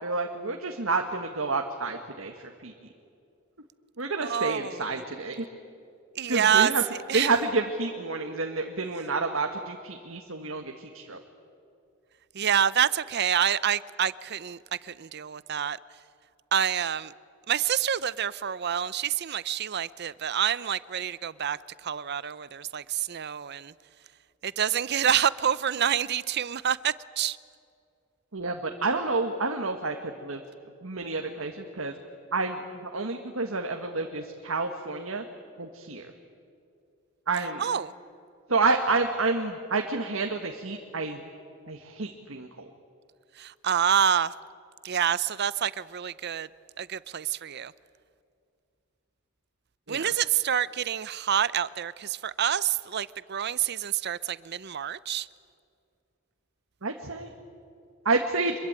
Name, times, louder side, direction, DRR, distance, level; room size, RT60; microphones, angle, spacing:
voice 1, 0.0-2.7 4.0-5.4 6.3-6.8 7.1-11.2 28.3-30.4 30.8-31.9 32.3-35.2 35.6-36.1 37.3-37.6 38.5-41.2 41.7-42.7 49.9-50.1 56.8-57.3 58.0-58.5, right 3 dB, 75° right, 1.7 m, -29 dB
voice 2, 4.2-4.8 6.1-6.7 7.1-7.3 12.3-15.8 16.5-17.1 17.5-23.7 24.4-27.4 37.6-37.9 43.4-44.3 44.8-46.5 46.8-47.7 49.9-55.3, right 9 dB, 55° right, 0.6 m, -27 dB
25.5 x 22.0 x 8.9 m
head